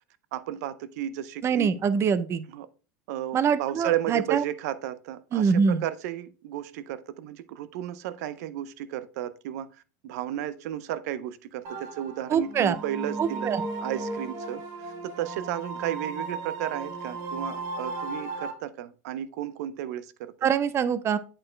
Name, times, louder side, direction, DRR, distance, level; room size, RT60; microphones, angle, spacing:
voice 1, 0.3-1.8 2.5-2.7 3.1-9.7 10.0-13.5 13.8-14.6 15.0-20.3, right 11 dB, 70° right, 0.6 m, -33 dB
voice 2, 1.4-2.4 3.3-4.4 5.3-5.8 12.3-12.8 13.2-13.6 20.4-21.2, right 6 dB, 30° right, 0.6 m, -24 dB
sound 1, 11.6-18.5, right 3 dB, 55° right, 1.8 m, -35 dB
8.8 x 4.3 x 3.2 m
supercardioid pair, 115°, 9 cm